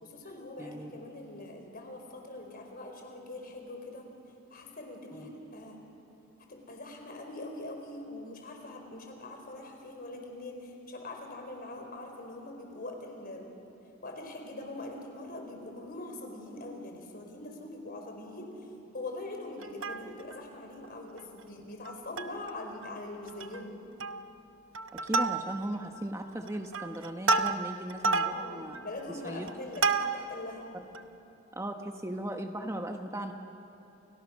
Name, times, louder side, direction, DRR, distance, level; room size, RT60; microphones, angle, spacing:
voice 1, 0.0-4.1 4.5-5.8 6.5-13.5 14.0-18.7 18.9-23.8 28.2-30.7, left 2 dB, 45° left, 3 dB, 4.6 m, -43 dB
voice 2, 0.6-1.1 5.1-5.3 25.0-28.8 29.1-29.5 30.7-30.8 31.5-33.3, right 1 dB, 15° right, 4 dB, 1.1 m, -37 dB
Plucked string instrument, 19.6-20.4 20.8-20.9 21.2-21.4 21.8-22.5 22.8-22.9 23.3-23.6 24.0-24.4 24.7-25.8 26.3-30.4 30.9-31.0, right 3 dB, 70° right, 1.0 m, -31 dB
30.0 x 29.5 x 6.4 m, 2.9 s
head